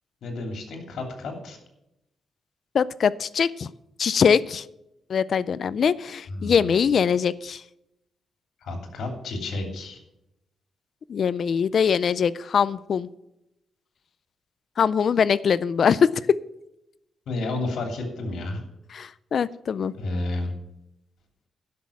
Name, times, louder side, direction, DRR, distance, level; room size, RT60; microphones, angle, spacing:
voice 1, 0.2-1.6 6.3-6.9 8.6-10.0 17.3-18.6 20.0-20.5, left 2 dB, 75° left, 4 dB, 2.9 m, -31 dB
voice 2, 2.7-3.7 4.0-4.6 5.1-7.6 11.1-13.1 14.8-16.4 18.9-19.9, left 7 dB, 50° left, 18 dB, 0.4 m, -22 dB
11.5 x 6.2 x 7.1 m, 0.85 s
wide cardioid pair, 140°, 0 cm